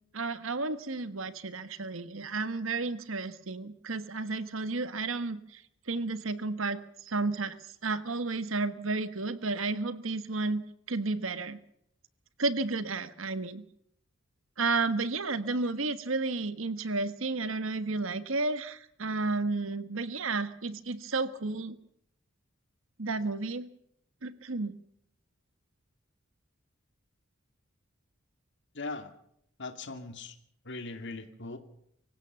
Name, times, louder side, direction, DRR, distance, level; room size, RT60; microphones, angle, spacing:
voice 1, 0.1-11.6 12.4-13.6 14.6-21.8 23.0-23.7 24.2-24.7, right 3 dB, 70° right, 13 dB, 1.4 m, -32 dB
voice 2, 28.8-29.1 29.6-30.3 30.7-31.6, left 3 dB, 60° left, 8 dB, 2.4 m, -39 dB
25.0 x 16.0 x 7.0 m, 0.72 s
head